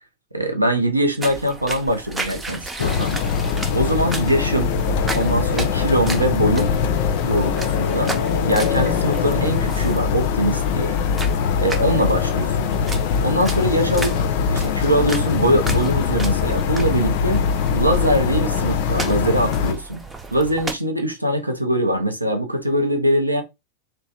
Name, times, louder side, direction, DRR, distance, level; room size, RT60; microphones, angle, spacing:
voice 1, 0.3-3.2 3.7-4.7 5.1-6.7 7.2-8.1 8.4-11.0 11.6-12.7 13.2-17.4 17.7-20.0 20.3-23.4, right 1 dB, 85° right, 0.6 m, -22 dB
sound 1, 1.2-20.8, right 3 dB, 10° right, 0.5 m, -34 dB
sound 2, 2.8-19.7, left 7 dB, 50° left, 0.3 m, -22 dB
3.0 x 2.1 x 2.8 m
figure-of-eight pair, 90°, 0 cm